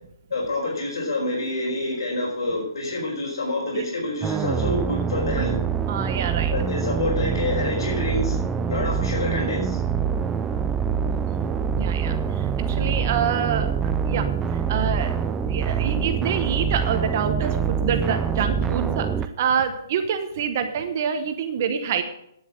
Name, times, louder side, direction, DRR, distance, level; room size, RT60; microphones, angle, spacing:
voice 1, 0.3-5.5 6.5-8.4 8.7-9.8, left 2 dB, 75° left, -5 dB, 4.4 m, -27 dB
sound 1, 4.2-19.3, right 7 dB, 5° right, 0.3 m, -25 dB
voice 2, 5.9-6.5 10.0-10.4 11.7-13.7 14.1-15.2 15.5-22.0, right 7 dB, 30° right, 8 dB, 1.0 m, -27 dB
9.9 x 7.0 x 7.5 m, 0.76 s
hypercardioid pair, 175°, 3 cm